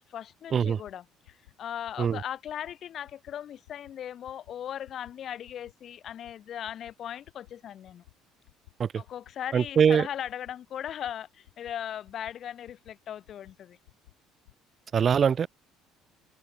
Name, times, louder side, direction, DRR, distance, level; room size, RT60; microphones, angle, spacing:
voice 1, 0.1-8.0 8.9-13.8, left 10 dB, 55° left, 1.2 m, -38 dB
sound 1, 0.8-0.9 1.2-1.5 1.8-2.1 2.4-2.7 3.0-3.3 3.6-3.9 4.2-4.5 4.8-5.1 5.4-5.7 6.0-6.3 6.6-6.9 7.2-7.5 7.8-8.1 8.4-8.7 9.0-9.3 9.6-9.9 10.2-10.5 10.8-11.1 11.4-11.7 12.0-12.3 12.6-12.9 13.2-13.5 13.8-14.1 14.4-14.5, left 23 dB, 85° left, 6.5 m, -55 dB
voice 2, 9.5-10.1 14.9-15.5, right 7 dB, 45° right, 0.3 m, -23 dB
hypercardioid pair, 65°, 0 cm